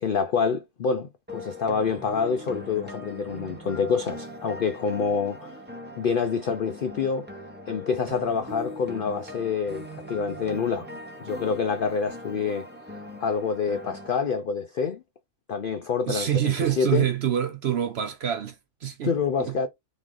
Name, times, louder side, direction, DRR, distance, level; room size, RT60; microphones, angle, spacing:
voice 1, 0.0-5.6 5.9-7.3 7.7-10.9 11.2-12.7 13.2-15.0 15.5-17.1 19.0-19.7, left 5 dB, 85° left, 0.4 m, -27 dB
sound 1, 1.3-14.1, equal, 10° right, 0.5 m, -40 dB
voice 2, 16.1-19.6, right 10 dB, 60° right, 0.7 m, -26 dB
3.6 x 3.1 x 3.7 m
omnidirectional pair, 1.6 m